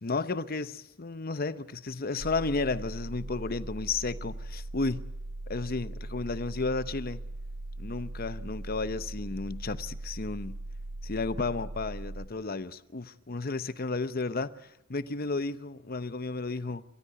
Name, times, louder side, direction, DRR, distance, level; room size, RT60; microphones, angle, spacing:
voice 1, 0.0-5.0 5.5-7.2 7.8-10.6 11.0-16.8, left 3 dB, 45° left, 0.8 m, -33 dB
sound 1, 2.2-12.3, right 2 dB, 80° right, 1.6 m, -39 dB
29.5 x 13.0 x 9.6 m
head